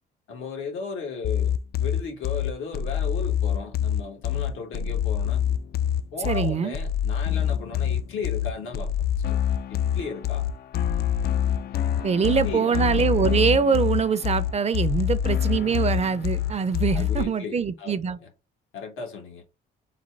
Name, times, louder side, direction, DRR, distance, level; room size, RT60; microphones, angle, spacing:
voice 1, 0.3-5.4 6.1-8.9 9.3-9.4 9.7-10.4 12.1-12.8 16.9-18.3 18.7-19.4, left 5 dB, 85° left, 1.5 m, -36 dB
sound 1, 1.2-17.2, left 10 dB, 55° left, 0.4 m, -26 dB
voice 2, 6.2-6.8 12.0-18.2, right 6 dB, 35° right, 0.5 m, -23 dB
4.1 x 2.3 x 4.6 m
cardioid pair, 90°, 20 cm